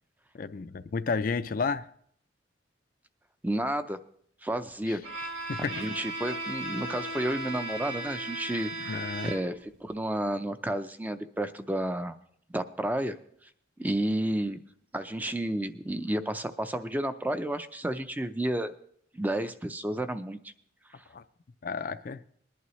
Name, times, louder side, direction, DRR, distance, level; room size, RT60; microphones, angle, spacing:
voice 1, 0.3-1.9 4.9-5.0 5.5-5.8 8.8-9.3 21.1-21.2 21.6-22.2, left 4 dB, 45° left, 0.4 m, -32 dB
voice 2, 3.4-4.0 4.4-5.0 5.6-12.2 12.5-13.1 13.8-14.6 14.9-18.7 19.1-20.5, right 1 dB, 10° right, 0.5 m, -31 dB
Bowed string instrument, 5.0-9.7, right 1 dB, 90° right, 2.6 m, -36 dB
20.5 x 11.0 x 3.1 m
head